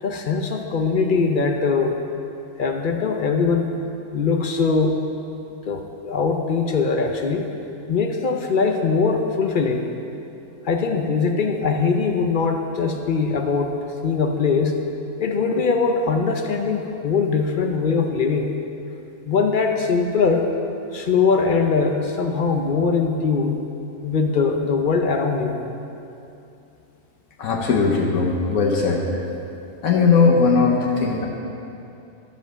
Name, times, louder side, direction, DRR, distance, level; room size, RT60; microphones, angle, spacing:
voice 1, 0.0-2.0 2.6-3.7 4.1-5.0 5.7-7.5 7.9-9.9 10.6-13.7 14.0-14.8 15.2-18.5 19.3-20.5 20.9-23.6 24.0-25.6, left 4 dB, 50° left, 4 dB, 0.6 m, -21 dB
voice 2, 27.4-29.1 29.8-31.3, left 4 dB, 75° left, -1 dB, 1.3 m, -18 dB
13.0 x 5.3 x 6.1 m, 2.8 s
omnidirectional pair, 1.5 m